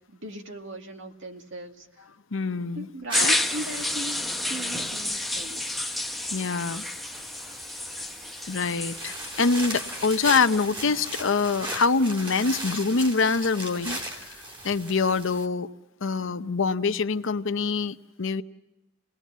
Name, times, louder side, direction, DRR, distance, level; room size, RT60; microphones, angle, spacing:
voice 1, 0.0-2.0 2.7-5.9, right 1 dB, 65° right, 4 dB, 2.1 m, -38 dB
voice 2, 2.3-2.9 3.2-3.4 6.3-6.8 8.4-14.3 14.6-15.7 16.0-18.4, left 4 dB, 65° left, 11 dB, 0.8 m, -25 dB
sound 1, 3.1-10.6, left 1 dB, ahead, 0.9 m, -31 dB
sound 2, 3.1-15.5, right 1 dB, 25° right, 2.6 m, -38 dB
27.5 x 20.0 x 7.4 m, 0.97 s
head